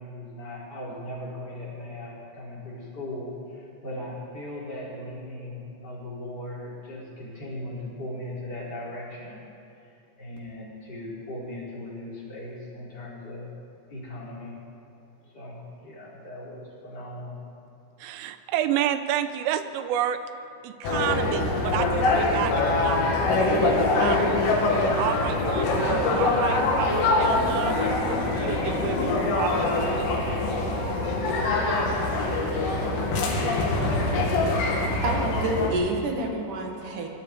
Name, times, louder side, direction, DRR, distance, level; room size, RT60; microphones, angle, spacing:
voice 1, 0.0-9.5 9.8-13.5 13.9-14.6 15.2-17.4, left 1 dB, 20° left, -5 dB, 4.7 m, -38 dB
voice 2, 18.0-20.2 20.6-24.4 24.9-30.1, right 11 dB, 85° right, 10 dB, 3.3 m, -30 dB
sound 1, 20.8-35.7, left 2 dB, 70° left, 5.4 m, -24 dB
voice 3, 35.0-37.1, right 2 dB, 55° right, 2 dB, 2.6 m, -28 dB
25.5 x 21.5 x 4.8 m, 2.7 s
omnidirectional pair, 5.9 m